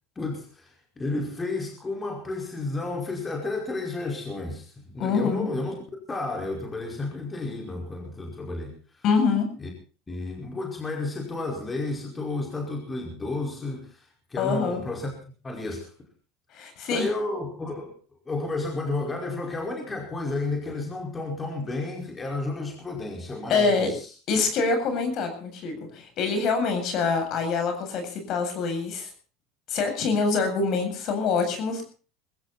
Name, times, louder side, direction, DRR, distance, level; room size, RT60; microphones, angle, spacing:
voice 1, 0.2-5.7 6.1-9.0 9.6-9.7 10.1-15.1 15.4-15.9 16.9-17.9 18.3-24.1, left 2 dB, 20° left, 1 dB, 5.2 m, -32 dB
voice 2, 5.0-5.5 9.0-9.5 14.4-14.8 16.5-17.1 23.5-23.9 24.3-29.1 29.7-31.9, left 4 dB, 50° left, 6 dB, 7.9 m, -25 dB
22.0 x 15.5 x 4.3 m, 0.38 s
supercardioid pair, 105°, 0 cm